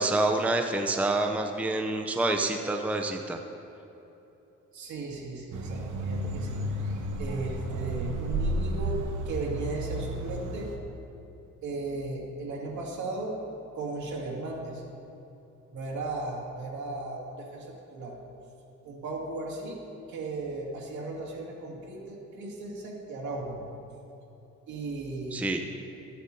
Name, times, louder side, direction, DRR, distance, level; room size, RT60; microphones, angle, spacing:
voice 1, 0.0-3.4 25.3-25.6, right 2 dB, 5° right, 4 dB, 0.6 m, -27 dB
voice 2, 4.7-6.6 7.2-10.7 11.6-13.4 13.7-14.8 15.7-18.2 18.8-19.8 20.1-23.6 24.7-25.4, right 2 dB, 70° right, -3 dB, 2.3 m, -36 dB
sound 1, 5.5-10.8, right 1 dB, 85° right, 1.0 m, -32 dB
14.5 x 10.0 x 2.8 m, 3.0 s
cardioid pair, 90°, 30 cm